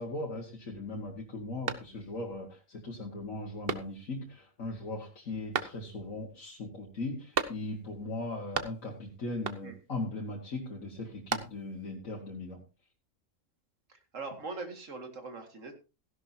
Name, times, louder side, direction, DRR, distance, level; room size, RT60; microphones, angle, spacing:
voice 1, 0.0-12.6, left 2 dB, 85° left, -2 dB, 2.3 m, -39 dB
sound 1, 1.6-2.3 2.8-2.9 3.6-4.3 5.5-6.2 7.3-9.0 9.4-9.9 10.9-11.9, right 6 dB, 50° right, 1.0 m, -36 dB
voice 2, 13.9-15.7, right 3 dB, 70° right, 5 dB, 2.4 m, -41 dB
16.0 x 11.5 x 2.8 m, 0.31 s
omnidirectional pair, 1.4 m